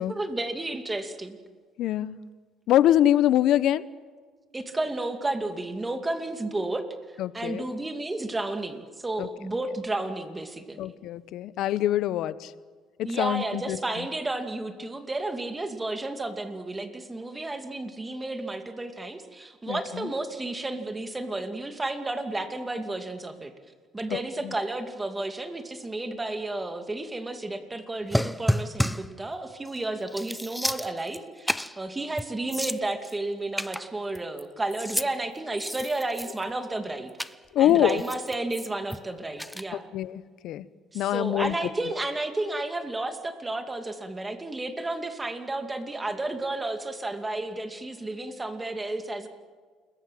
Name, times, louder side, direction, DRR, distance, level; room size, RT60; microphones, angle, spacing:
voice 1, 0.1-1.4 4.5-6.8 7.3-10.8 13.0-23.5 23.9-37.1 37.6-39.9 40.9-49.3, right 2 dB, 15° right, 7 dB, 2.6 m, -32 dB
voice 2, 1.8-2.2 2.7-3.8 7.2-7.7 9.2-9.3 10.8-12.5 13.0-14.1 19.7-20.1 24.1-24.5 37.5-38.0 39.9-40.6 40.9-41.5, left 12 dB, 65° left, 16 dB, 1.0 m, -24 dB
remove eggshell mono, 28.1-29.1 29.7-29.8 30.1-31.2 31.5-31.8 32.2-32.3 32.5-33.1 33.6-34.4 34.7-35.1 35.5-36.5 37.2-37.3 37.9-39.0 39.4-39.6, equal, ahead, 0.7 m, -30 dB
29.0 x 21.0 x 7.7 m, 1.6 s
cardioid pair, 130°, 0 cm